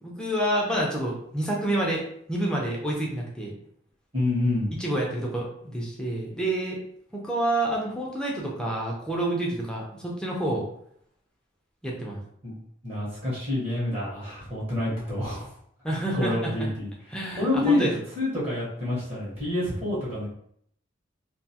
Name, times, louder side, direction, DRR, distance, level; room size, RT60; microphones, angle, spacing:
voice 1, 0.0-2.0 2.3-3.5 4.8-6.8 7.1-10.7 11.8-12.2 15.8-16.7 17.1-17.9, right 1 dB, 5° left, -3 dB, 0.5 m, -28 dB
voice 2, 4.1-4.7 12.4-12.5 12.8-15.5 16.1-16.9 17.4-17.9 18.2-20.3, left 2 dB, 35° right, -7 dB, 0.9 m, -27 dB
2.4 x 2.3 x 2.7 m, 0.68 s
head